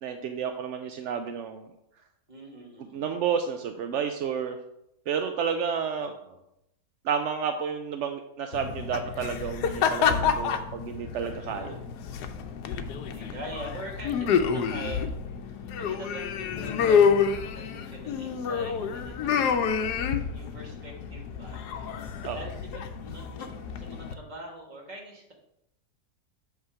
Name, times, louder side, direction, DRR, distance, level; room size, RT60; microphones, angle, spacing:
voice 1, 0.0-1.7 2.9-4.6 5.1-6.1 7.0-11.7 22.2-22.4, right 7 dB, 70° right, 6 dB, 0.7 m, -31 dB
voice 2, 2.3-3.1 6.0-6.4 11.4-20.0 20.3-21.6 22.3-25.3, right 1 dB, 30° right, -1 dB, 1.5 m, -44 dB
sound 1, 8.5-24.1, left 6 dB, 85° left, 1.2 m, -28 dB
8.1 x 3.6 x 5.7 m, 0.81 s
omnidirectional pair, 1.7 m